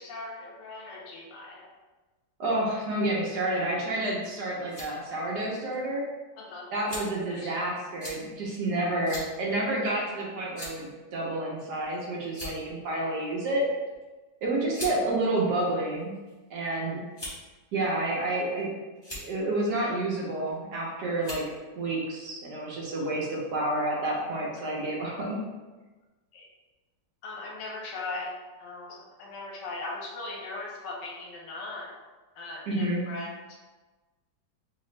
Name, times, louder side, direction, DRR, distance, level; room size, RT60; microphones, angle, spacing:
voice 1, 0.0-1.7 6.4-6.7 7.3-7.6 26.3-26.5 27.2-32.0 32.3-33.3, left 2 dB, 75° left, -1 dB, 1.3 m, -39 dB
voice 2, 2.4-6.0 6.7-13.6 14.4-16.1 16.5-17.0 17.7-18.7 19.1-21.4 21.8-25.3 32.7-33.0, right 1 dB, 65° right, -3 dB, 1.2 m, -29 dB
sound 1, 4.7-4.9 5.7-5.8 6.9-7.2 8.0-8.2 9.1-9.3 9.7-9.8 10.5-10.9 11.8-11.9 12.3-12.7 13.9-14.0 14.7-15.0 15.8-16.4 17.1-17.5 18.3-18.6 18.9-19.2 20.5-20.7 21.2-21.5, left 1 dB, 20° left, 0.8 m, -39 dB
3.3 x 2.9 x 3.1 m, 1.2 s
omnidirectional pair, 2.0 m